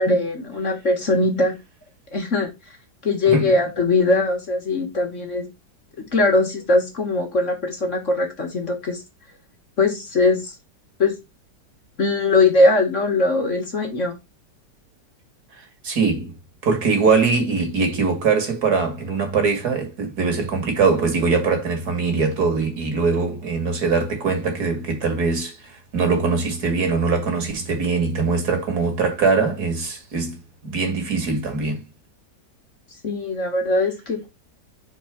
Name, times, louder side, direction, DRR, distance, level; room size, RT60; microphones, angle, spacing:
voice 1, 0.0-1.5 2.1-2.5 3.0-5.5 6.1-9.0 9.8-10.6 11.0-11.2 12.0-14.2 33.0-34.3, left 2 dB, 45° left, 2.0 m, -20 dB
voice 2, 15.8-16.3 16.6-31.8, right 4 dB, 60° right, 2.3 m, -22 dB
4.8 x 4.2 x 5.8 m
omnidirectional pair, 1.9 m